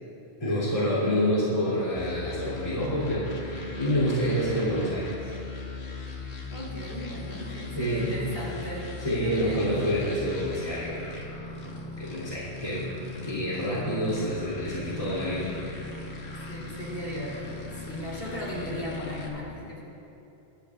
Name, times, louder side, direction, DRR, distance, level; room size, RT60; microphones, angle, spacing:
voice 1, 0.4-5.3 7.7-8.1 9.0-11.2 12.0-12.9 13.2-15.5, equal, 30° left, -9 dB, 2.9 m, -28 dB
sound 1, 1.9-19.3, left 3 dB, 70° left, 1.5 m, -38 dB
voice 2, 6.5-8.9 9.2-9.8 16.5-19.8, left 1 dB, 55° left, -6 dB, 3.6 m, -37 dB
23.0 x 11.5 x 2.4 m, 2.9 s
omnidirectional pair, 1.1 m